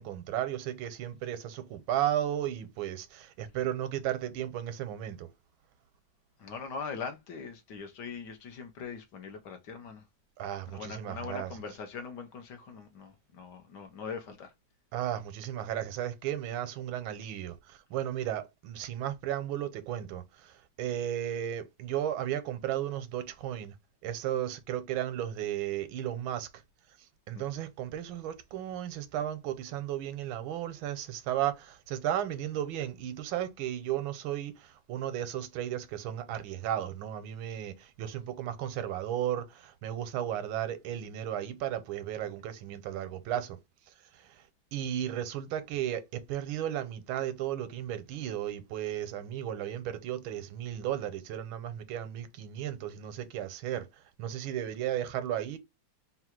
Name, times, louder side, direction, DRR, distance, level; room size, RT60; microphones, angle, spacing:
voice 1, 0.0-5.3 10.4-11.6 14.9-23.7 24.0-26.5 27.3-43.6 44.1-44.4 44.7-55.6, right 11 dB, 90° right, 1.5 m, -34 dB
voice 2, 6.4-10.0 10.7-14.5 27.3-27.5, left 5 dB, 65° left, 1.3 m, -41 dB
3.8 x 2.3 x 4.4 m
omnidirectional pair, 2.2 m